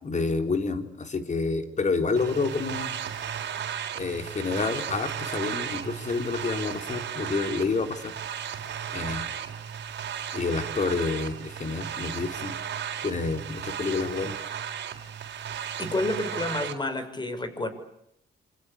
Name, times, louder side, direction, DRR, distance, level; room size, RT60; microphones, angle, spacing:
voice 1, 0.0-3.0 3.9-8.1 8.9-9.2 10.3-12.6 13.0-14.4, left 4 dB, 35° left, 7 dB, 4.1 m, -29 dB
sound 1, 2.2-16.7, right 8 dB, 60° right, 4.2 m, -35 dB
voice 2, 15.8-17.7, left 2 dB, 20° left, 11 dB, 6.2 m, -29 dB
27.0 x 25.5 x 8.4 m, 0.76 s
cardioid pair, 90°, 20 cm